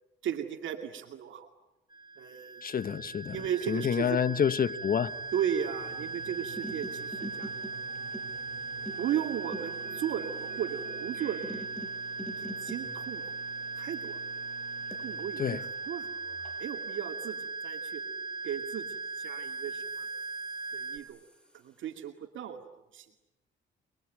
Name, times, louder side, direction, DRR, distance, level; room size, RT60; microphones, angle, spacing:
voice 1, 0.2-1.5 2.2-2.6 3.3-4.2 5.3-7.8 9.0-11.4 12.3-13.3 13.7-14.2 15.0-18.0 18.4-20.1 20.7-21.2 21.5-22.6 22.9-23.1, right 9 dB, 75° right, 2.4 m, -36 dB
sound 1, 1.9-21.0, right 4 dB, 20° right, 3.3 m, -39 dB
voice 2, 2.6-3.4 3.7-5.1 15.4-15.6, left 8 dB, 45° left, 1.2 m, -28 dB
sound 2, 5.0-11.6, right 7 dB, 45° right, 3.1 m, -51 dB
sound 3, 5.8-18.4 19.0-21.8, right 1 dB, 5° left, 6.9 m, -48 dB
29.0 x 22.0 x 9.2 m
cardioid pair, 90°, 20 cm